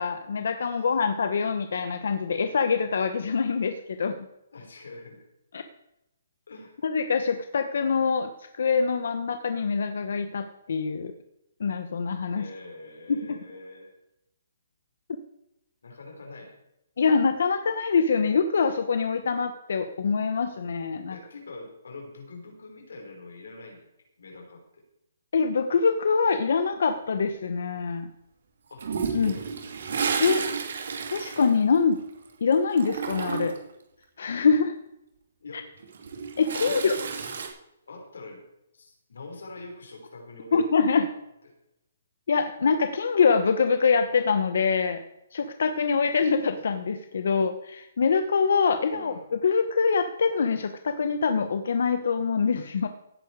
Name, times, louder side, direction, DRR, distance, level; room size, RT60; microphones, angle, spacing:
voice 1, 0.0-4.2 5.5-5.6 6.8-11.1 11.6-12.5 13.1-13.4 17.0-21.2 25.3-28.1 29.1-29.3 30.2-30.4 31.1-32.0 32.4-33.5 34.2-34.7 35.5-35.6 36.4-37.0 40.5-41.1 42.3-45.0 45.3-52.9, left 5 dB, 55° left, 9 dB, 1.1 m, -24 dB
voice 2, 4.5-5.2 6.5-6.8 12.3-13.9 15.8-16.5 21.1-23.9 24.2-24.8 28.7-29.5 35.4-35.7 36.6-37.3 37.9-38.4 38.7-40.6 40.9-41.1 48.9-49.2, left 2 dB, 90° left, 2 dB, 5.1 m, -44 dB
Toilet flush, 28.8-32.3 32.5-33.7 35.8-37.5, right 6 dB, 55° right, 2.6 m, -31 dB
16.5 x 10.0 x 4.8 m, 0.86 s
hypercardioid pair, 180°, 0 cm